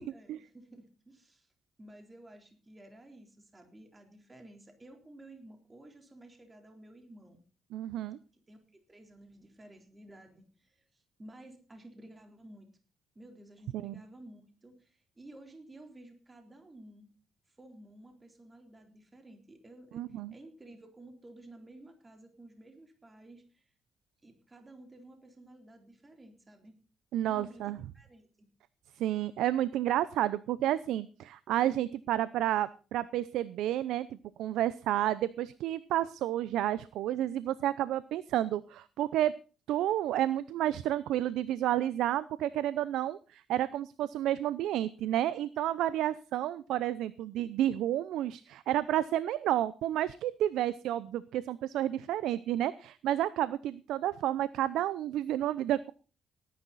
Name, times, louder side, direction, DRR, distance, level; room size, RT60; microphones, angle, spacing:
voice 1, 0.1-1.5 1.8-7.4 8.3-12.7 13.2-17.1 17.5-23.7 24.2-26.8 27.2-28.5, right 1 dB, 20° right, 5 dB, 3.8 m, -53 dB
voice 2, 7.7-8.2 13.7-13.9 19.9-20.3 27.1-27.8 29.0-39.3 39.7-55.9, right 12 dB, 90° right, 17 dB, 0.6 m, -31 dB
18.0 x 10.5 x 4.1 m, 0.35 s
cardioid pair, 85°, 0 cm